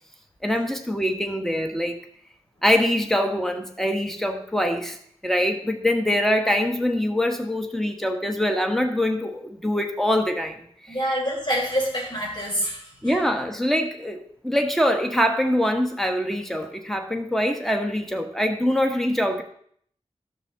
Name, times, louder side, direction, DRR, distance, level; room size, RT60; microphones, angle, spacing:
voice 1, 0.4-2.0 2.6-5.0 5.2-11.2 13.0-19.4, equal, 5° left, 5 dB, 1.4 m, -24 dB
voice 2, 10.9-13.1, equal, 40° left, -3 dB, 4.7 m, -26 dB
13.5 x 6.2 x 4.1 m, 0.64 s
wide cardioid pair, 55°, 12 cm